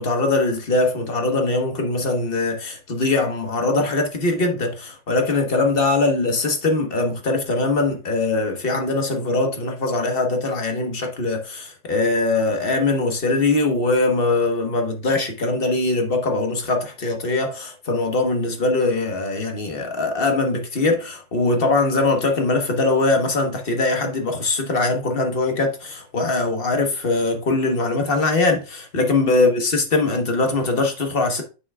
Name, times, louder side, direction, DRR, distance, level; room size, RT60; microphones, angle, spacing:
voice 1, 0.0-31.4, left 3 dB, 35° left, 1.0 m, -21 dB
8.2 x 6.1 x 2.3 m
omnidirectional pair, 2.2 m